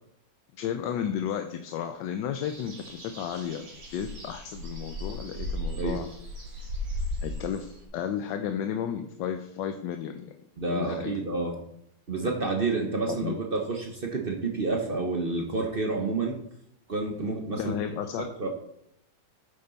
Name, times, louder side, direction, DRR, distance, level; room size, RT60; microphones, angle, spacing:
voice 1, 0.6-3.6 3.9-6.1 7.2-10.3 10.7-11.1 13.1-13.4 17.6-18.3, left 9 dB, 70° left, 7 dB, 1.2 m, -33 dB
sound 1, 2.4-7.8, left 1 dB, 70° right, 3.1 m, -36 dB
voice 2, 10.6-11.6 12.1-16.4 16.9-17.7 18.2-18.5, right 3 dB, 45° right, 2 dB, 0.8 m, -29 dB
8.8 x 7.9 x 4.0 m, 0.75 s
omnidirectional pair, 2.2 m